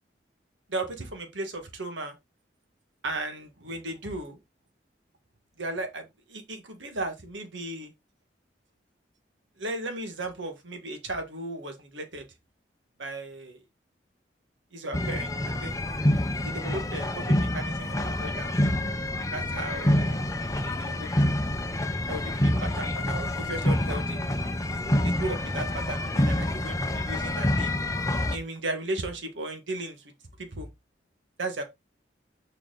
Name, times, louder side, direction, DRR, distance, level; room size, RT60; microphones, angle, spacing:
voice 1, 0.7-2.1 3.0-4.4 5.6-7.9 9.6-12.3 13.0-13.6 14.7-15.8 16.4-18.5 19.3-20.2 20.6-21.1 22.0-24.2 24.9-27.7 28.3-30.1 30.4-30.7 31.4-31.6, right 2 dB, 90° right, 1.6 m, -36 dB
sound 1, 14.9-28.4, left 1 dB, 15° left, 0.6 m, -27 dB
6.6 x 4.5 x 3.8 m
head